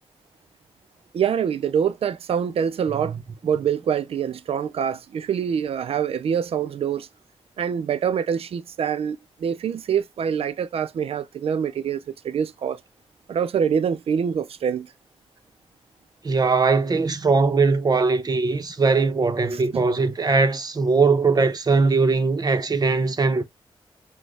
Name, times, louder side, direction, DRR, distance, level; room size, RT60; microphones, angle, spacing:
voice 1, 1.1-3.1 3.4-7.1 7.6-12.8 13.3-14.9 19.5-19.8, right 7 dB, 85° right, 0.4 m, -25 dB
voice 2, 16.2-23.4, right 4 dB, 40° right, 0.8 m, -20 dB
6.1 x 2.2 x 3.2 m
wide cardioid pair, 85°, 10 cm